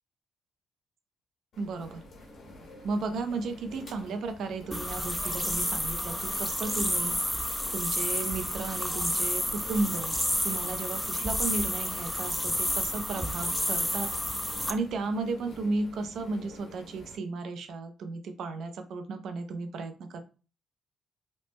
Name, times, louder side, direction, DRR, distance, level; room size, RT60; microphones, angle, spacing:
sound 1, 1.5-17.2, left 1 dB, 60° left, 1.1 m, -49 dB
voice 1, 1.6-2.0 2.8-7.2 7.7-10.1 10.4-14.1 14.7-20.2, right 3 dB, 70° right, 7 dB, 0.5 m, -34 dB
sound 2, 4.7-14.7, left 1 dB, 5° left, 0.3 m, -30 dB
3.1 x 2.0 x 3.0 m, 0.34 s
cardioid pair, 90°, 0 cm